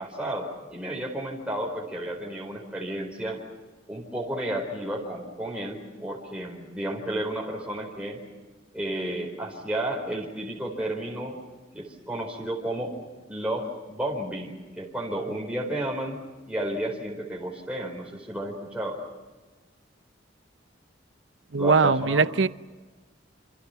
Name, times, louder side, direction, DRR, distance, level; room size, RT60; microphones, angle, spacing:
voice 1, 0.0-3.4 3.9-8.2 8.7-11.4 11.7-12.9 13.3-19.0 21.6-22.3, right 1 dB, 5° right, 4.5 m, -32 dB
voice 2, 21.5-22.5, right 4 dB, 75° right, 0.8 m, -21 dB
28.0 x 27.5 x 5.8 m
head